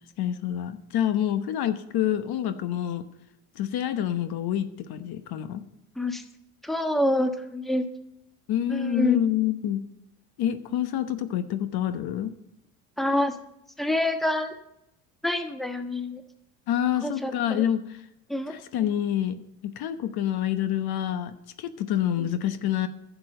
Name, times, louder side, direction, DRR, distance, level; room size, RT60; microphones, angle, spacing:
voice 1, 0.2-3.0 3.6-5.6 8.5-9.8 10.4-12.3 16.7-18.0 18.5-22.9, left 10 dB, 60° left, 10 dB, 1.0 m, -27 dB
voice 2, 6.6-7.8 8.7-9.2 13.0-13.3 13.8-14.5 15.2-16.2 17.0-17.6 18.3-18.5 22.2-22.3, left 2 dB, ahead, 6 dB, 1.3 m, -26 dB
11.0 x 7.0 x 7.7 m, 0.83 s
supercardioid pair, 85°, 43 cm